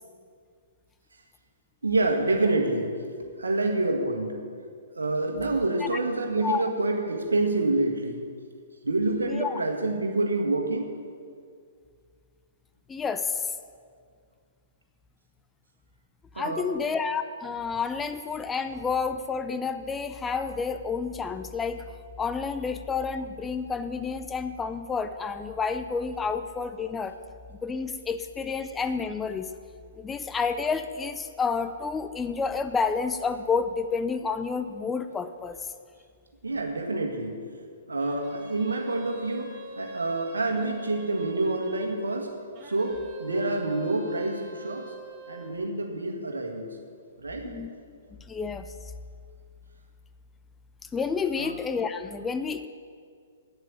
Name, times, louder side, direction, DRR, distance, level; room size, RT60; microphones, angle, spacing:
voice 1, 1.8-2.9 3.2-4.5 5.0-8.2 8.8-10.9 16.4-16.7 36.4-37.4 37.9-42.3 42.6-44.9 45.3-46.7 47.2-47.6 51.4-51.5, right 2 dB, 80° right, 2 dB, 1.7 m, -27 dB
voice 2, 9.3-9.6 12.9-13.5 16.4-21.8 22.2-27.2 27.6-29.5 30.0-35.6 47.4-47.7 48.3-48.6 50.9-52.7, left 5 dB, 15° left, 10 dB, 0.5 m, -30 dB
sound 1, 38.0-42.0 42.5-45.6, right 3 dB, 30° right, 2.3 m, -45 dB
8.8 x 7.9 x 8.9 m, 2.1 s
figure-of-eight pair, 120°, 0 cm